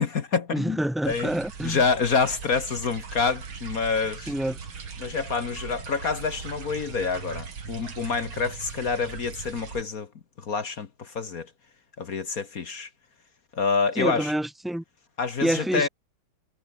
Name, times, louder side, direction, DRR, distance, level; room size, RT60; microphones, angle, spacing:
voice 1, 0.0-1.3 1.6-4.3 5.0-10.1 10.4-11.5 12.0-12.9 13.5-14.3 15.2-15.9, left 5 dB, 45° left, 1.6 m, -27 dB
voice 2, 0.5-1.8 4.3-4.6 14.0-14.8 15.4-15.9, right 1 dB, ahead, 0.7 m, -27 dB
sound 1, 1.0-9.8, right 5 dB, 75° right, 3.6 m, -39 dB
omnidirectional pair, 2.3 m